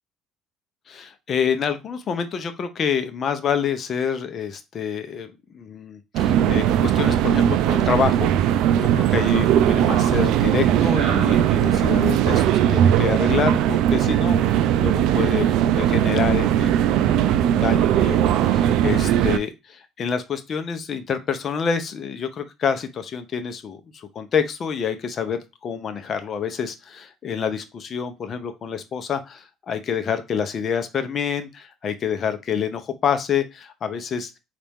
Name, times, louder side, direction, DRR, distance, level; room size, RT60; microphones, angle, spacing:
voice 1, 0.9-34.3, left 7 dB, 45° left, 9 dB, 0.7 m, -27 dB
sound 1, 6.1-19.4, right 10 dB, 75° right, 0.3 m, -19 dB
4.1 x 2.5 x 3.5 m, 0.25 s
cardioid pair, 105°, 0 cm